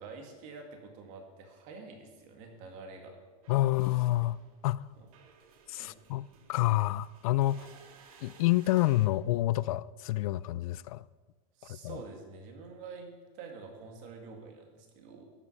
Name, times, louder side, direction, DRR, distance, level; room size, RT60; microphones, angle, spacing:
voice 1, 0.0-3.2 5.0-5.1 5.7-5.9 11.6-15.2, right 4 dB, 45° right, 2.1 m, -47 dB
sound 1, 3.4-9.1, right 5 dB, 70° right, 1.7 m, -58 dB
voice 2, 3.5-4.8 5.7-7.7 8.2-11.0 11.7-12.0, left 16 dB, 75° left, 0.5 m, -28 dB
12.5 x 8.3 x 5.6 m
supercardioid pair, 165°, 19 cm